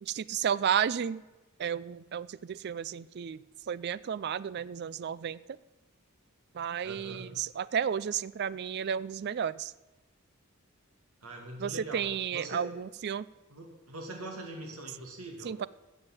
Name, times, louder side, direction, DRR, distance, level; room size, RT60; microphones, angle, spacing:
voice 1, 0.0-1.2 1.6-3.4 3.7-5.4 6.5-9.7 11.6-13.3 15.4-15.7, right 8 dB, 50° right, 18 dB, 0.4 m, -32 dB
voice 2, 6.8-7.4 11.2-12.7 13.5-15.6, right 2 dB, 80° right, 2 dB, 2.3 m, -42 dB
14.0 x 7.3 x 8.9 m, 1.2 s
head